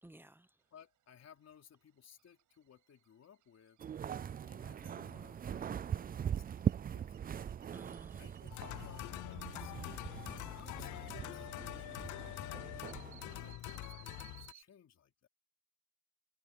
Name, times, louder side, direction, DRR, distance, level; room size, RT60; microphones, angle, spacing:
voice 1, 0.0-0.6 7.7-8.4 10.3-10.6, right 1 dB, 5° right, 0.8 m, -57 dB
sound 1, 0.6-14.6, right 13 dB, 75° right, 7.8 m, -65 dB
voice 2, 0.7-3.8 4.4-7.3 8.1-12.7 13.3-15.3, left 8 dB, 55° left, 4.3 m, -61 dB
sound 2, 3.8-13.5, right 8 dB, 30° right, 0.4 m, -41 dB
sound 3, 8.5-14.5, left 17 dB, 75° left, 0.6 m, -45 dB
cardioid pair, 90°, 30 cm